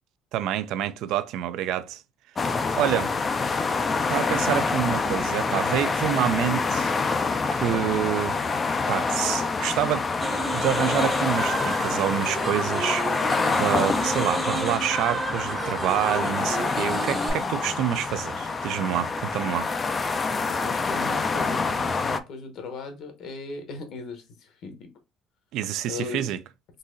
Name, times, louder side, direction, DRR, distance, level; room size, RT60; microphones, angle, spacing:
voice 1, 0.3-2.0 2.8-3.1 4.1-7.0 7.5-8.4 8.9-10.1 10.5-19.7 25.5-26.4, right 11 dB, 65° right, 0.3 m, -27 dB
sound 1, 2.3-22.2, left 4 dB, 25° left, 0.3 m, -26 dB
sound 2, 10.2-17.3, right 3 dB, 15° right, 0.6 m, -32 dB
voice 2, 20.3-24.7 25.8-26.3, left 4 dB, 55° left, 0.9 m, -37 dB
3.9 x 2.7 x 2.6 m
cardioid pair, 150°, 0 cm